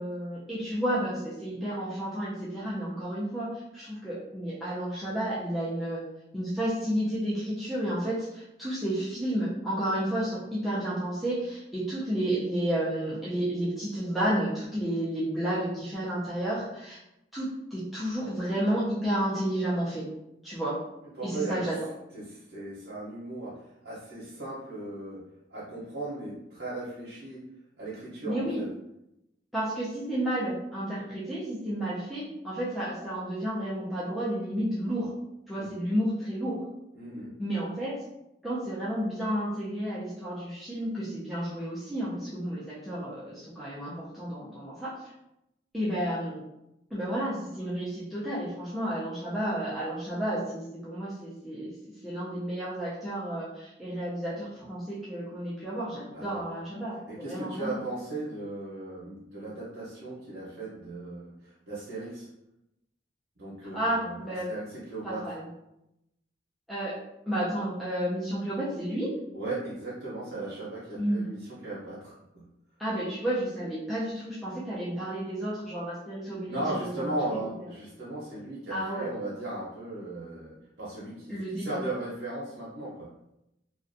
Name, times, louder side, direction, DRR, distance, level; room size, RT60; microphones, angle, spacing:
voice 1, 0.0-6.0 6.3-17.0 17.3-20.1 20.4-20.8 21.2-21.9 28.3-28.6 29.5-35.1 35.5-36.7 37.4-38.0 38.4-45.1 45.7-46.4 46.9-57.7 63.7-64.5 65.0-65.5 66.7-67.0 67.3-69.1 71.0-71.2 72.8-77.4 78.7-79.1 81.3-81.8, right 1 dB, ahead, -10 dB, 0.4 m, -31 dB
voice 2, 21.2-21.6 22.1-25.2 25.5-27.5 27.8-28.6 35.5-35.7 36.9-37.3 56.1-56.4 57.1-62.3 63.4-65.3 69.3-72.4 74.5-74.6 76.5-83.1, right 2 dB, 80° right, -8 dB, 0.7 m, -37 dB
2.5 x 2.2 x 2.5 m, 0.86 s
head